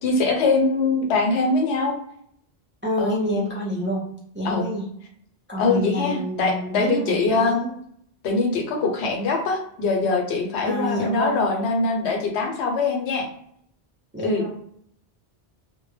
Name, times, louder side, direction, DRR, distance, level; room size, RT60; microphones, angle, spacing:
voice 1, 0.0-1.9 3.0-3.2 4.4-4.7 5.6-7.6 8.2-13.3 14.2-14.4, left 3 dB, 85° left, 2 dB, 0.9 m, -23 dB
voice 2, 2.8-4.1 4.3-4.8 5.5-7.7 10.6-11.5 14.1-14.5, equal, 20° right, -5 dB, 0.3 m, -27 dB
2.2 x 2.0 x 3.1 m, 0.68 s
omnidirectional pair, 1.1 m